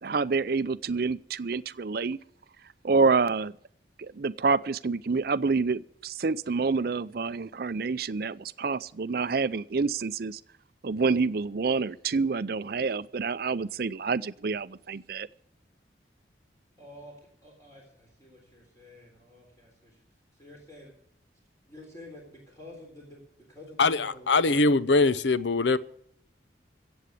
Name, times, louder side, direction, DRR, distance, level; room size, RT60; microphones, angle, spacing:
voice 1, 0.0-2.2 2.8-3.5 4.0-10.4 10.8-15.3, right 4 dB, 55° right, 0.5 m, -27 dB
voice 2, 16.8-17.1 17.4-20.0 20.3-20.9 21.6-23.2 23.5-24.4, left 1 dB, 20° left, 3.7 m, -49 dB
voice 3, 23.8-25.8, left 3 dB, 75° left, 0.7 m, -22 dB
16.0 x 7.9 x 8.3 m
head